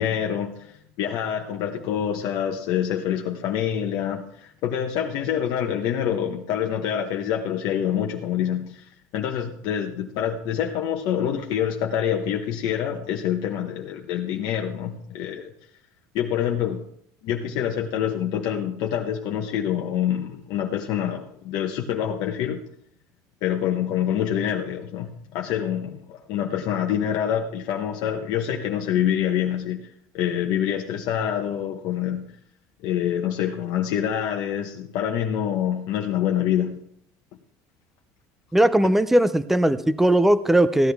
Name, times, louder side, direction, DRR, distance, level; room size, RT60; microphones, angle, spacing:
voice 1, 0.0-15.5 16.1-16.9 17.2-22.6 23.4-29.9 30.1-32.3 32.8-36.8, left 9 dB, 55° left, 2 dB, 1.1 m, -26 dB
voice 2, 38.5-40.9, right 1 dB, 5° right, 14 dB, 0.5 m, -19 dB
16.0 x 11.0 x 3.5 m, 0.68 s
cardioid pair, 160°, 8 cm